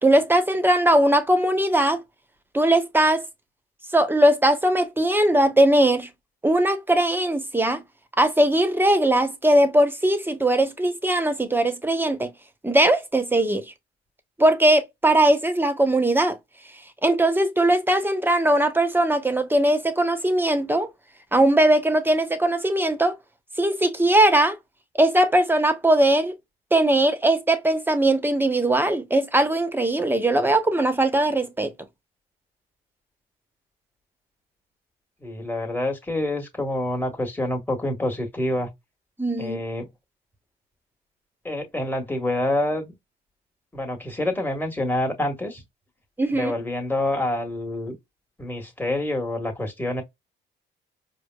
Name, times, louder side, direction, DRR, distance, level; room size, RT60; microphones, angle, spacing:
voice 1, 0.0-2.0 2.5-3.2 3.9-6.1 6.4-7.8 8.2-12.3 12.6-13.6 14.4-16.4 17.0-20.9 21.3-23.2 23.6-24.6 24.9-26.4 26.7-31.7 39.2-39.6 46.2-46.5, right 1 dB, 10° right, 1.0 m, -20 dB
voice 2, 35.2-38.7 39.4-39.9 41.4-42.9 43.7-45.6 46.3-48.0 48.4-50.0, left 1 dB, 10° left, 1.7 m, -27 dB
4.8 x 2.2 x 2.3 m
cardioid pair, 90°, 20 cm